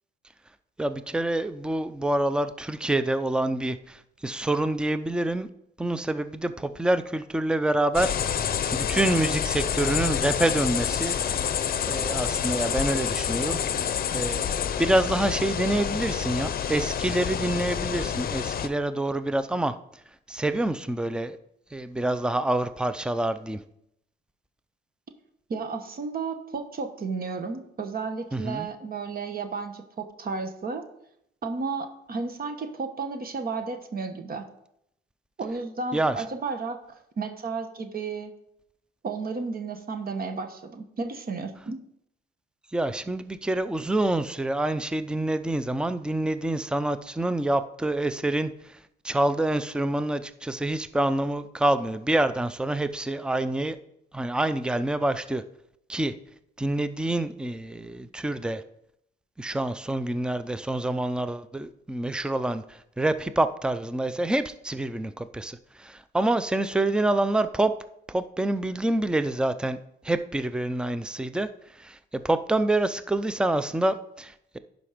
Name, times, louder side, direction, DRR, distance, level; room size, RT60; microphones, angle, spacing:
voice 1, 0.8-5.5 5.8-8.1 8.7-11.4 11.9-13.6 14.1-19.7 20.3-21.4 21.7-23.6 28.3-28.7 35.9-36.1 42.7-48.5 49.0-53.8 54.1-55.4 55.9-56.1 56.6-58.6 59.4-67.7 68.1-69.8 70.0-71.5 71.8-74.6, right 1 dB, 5° right, 12 dB, 0.5 m, -27 dB
sound 1, 7.9-18.7, left 8 dB, 50° left, 0.6 m, -28 dB
voice 2, 25.5-30.8 31.4-34.5 35.4-38.3 39.0-41.8, right 4 dB, 50° right, 7 dB, 1.2 m, -33 dB
11.0 x 5.2 x 5.0 m, 0.76 s
cardioid pair, 90°, 20 cm